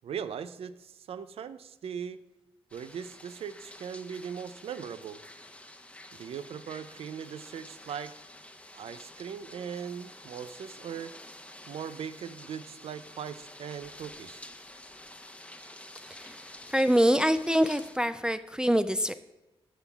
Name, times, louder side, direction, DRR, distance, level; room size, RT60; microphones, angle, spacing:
voice 1, 0.0-2.2 2.7-5.2 6.1-8.1 8.7-11.1 11.7-14.4, right 7 dB, 75° right, 13 dB, 0.4 m, -39 dB
sound 1, 2.7-18.0, left 1 dB, 10° left, 0.8 m, -49 dB
voice 2, 16.7-19.1, equal, 10° right, 10 dB, 0.3 m, -25 dB
12.5 x 7.0 x 2.3 m, 0.98 s
cardioid pair, 60°, 10 cm